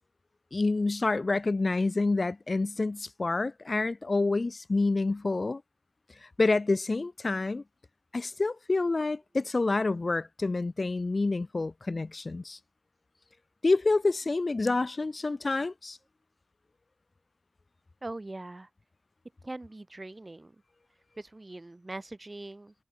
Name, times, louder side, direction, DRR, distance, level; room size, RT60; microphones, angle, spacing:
voice 1, 0.5-5.6 6.2-7.6 8.1-12.6 13.6-16.0, left 3 dB, 55° left, 1.5 m, -28 dB
voice 2, 18.0-18.7 19.4-20.5 21.2-22.9, right 2 dB, 35° right, 6.6 m, -41 dB
wide cardioid pair, 55°, 0 cm